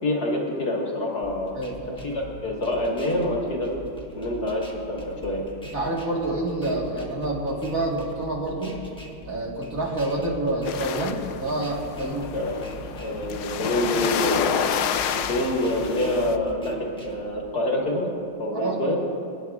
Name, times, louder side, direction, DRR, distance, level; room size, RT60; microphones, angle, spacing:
voice 1, 0.0-1.6 2.0-3.7 4.1-5.4 12.3-12.6 13.0-14.7 15.3-16.8 17.1-18.1 18.4-19.0, left 1 dB, 50° left, -3 dB, 2.2 m, -26 dB
sound 1, 1.2-17.2, right 1 dB, 5° left, 0.8 m, -43 dB
voice 2, 1.5-2.0 5.7-8.8 9.2-12.3 18.5-18.8, right 2 dB, 40° right, -4 dB, 1.9 m, -28 dB
sound 2, 10.6-16.4, left 8 dB, 80° left, 0.9 m, -29 dB
29.0 x 10.0 x 2.4 m, 2.5 s
omnidirectional pair, 2.3 m